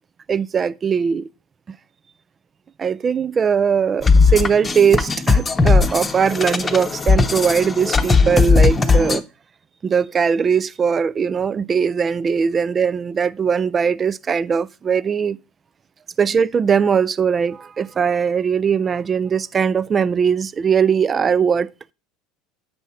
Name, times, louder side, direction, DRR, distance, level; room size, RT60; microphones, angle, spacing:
voice 1, 0.3-1.3 2.8-9.2 9.8-15.4 16.2-21.7, right 6 dB, 30° right, 0.4 m, -20 dB
sound 1, 4.0-9.2, left 4 dB, 20° left, 0.9 m, -17 dB
8.3 x 5.5 x 4.2 m
hypercardioid pair, 80°, 0 cm